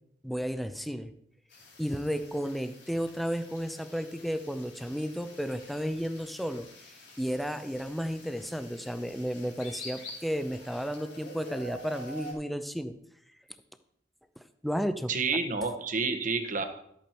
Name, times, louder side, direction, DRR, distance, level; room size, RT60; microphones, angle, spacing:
voice 1, 0.2-1.1 1.8-6.7 7.2-13.0 14.6-15.1, equal, ahead, 10 dB, 0.6 m, -33 dB
sound 1, 1.5-12.3, left 1 dB, 80° left, 3.8 m, -48 dB
voice 2, 15.1-16.7, right 4 dB, 45° right, 7 dB, 1.2 m, -29 dB
12.5 x 8.4 x 4.4 m, 0.73 s
head